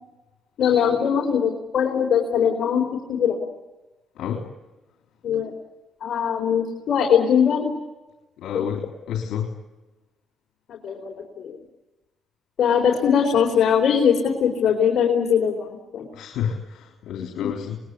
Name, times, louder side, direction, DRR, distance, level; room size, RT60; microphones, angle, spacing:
voice 1, 0.6-3.4 5.2-5.5 6.0-7.7 8.5-8.6 10.7-11.5 12.6-16.1 17.4-17.5, left 7 dB, 65° left, 1 dB, 4.4 m, -21 dB
voice 2, 4.2-4.5 8.4-9.6 16.1-17.8, left 8 dB, 80° left, 2 dB, 3.5 m, -30 dB
26.5 x 21.0 x 9.9 m, 1.1 s
cardioid pair, 90°, 0 cm